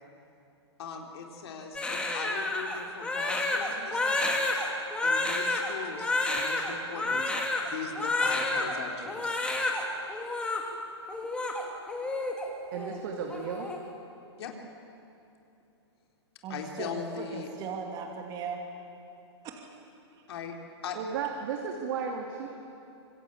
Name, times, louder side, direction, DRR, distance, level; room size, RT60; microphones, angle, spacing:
voice 1, 0.8-4.7 5.0-7.3 7.7-9.4 14.4-14.5 16.5-17.5 20.3-20.5 20.8-21.0, left 6 dB, 65° left, 2 dB, 3.7 m, -40 dB
Crying sobbing, 1.7-8.7 9.1-9.8 10.1-10.6 11.1-12.5 12.7-13.0 13.3-13.8, left 2 dB, 5° left, 2.6 m, -30 dB
voice 2, 12.7-13.7 20.9-22.5, right 6 dB, 55° right, 1 dB, 2.6 m, -34 dB
voice 3, 16.4-18.6 19.4-19.8 20.1-20.2, right 5 dB, 30° right, 2 dB, 2.7 m, -38 dB
25.5 x 21.5 x 8.7 m, 2.8 s
hypercardioid pair, 145°, 15 cm